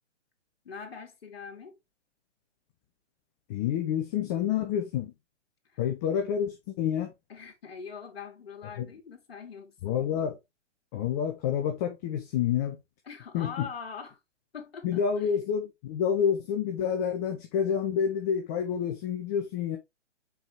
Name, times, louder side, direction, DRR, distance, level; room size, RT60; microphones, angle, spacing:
voice 1, 0.6-1.8 5.7-5.8 7.3-10.0 13.1-14.2 14.5-15.3, left 6 dB, 55° left, 2.3 m, -43 dB
voice 2, 3.5-5.1 5.8-7.1 8.8-8.9 9.8-10.4 10.9-12.8 13.3-13.7 14.8-19.8, left 8 dB, 15° left, 0.5 m, -28 dB
6.9 x 4.8 x 3.4 m
figure-of-eight pair, 125°, 36 cm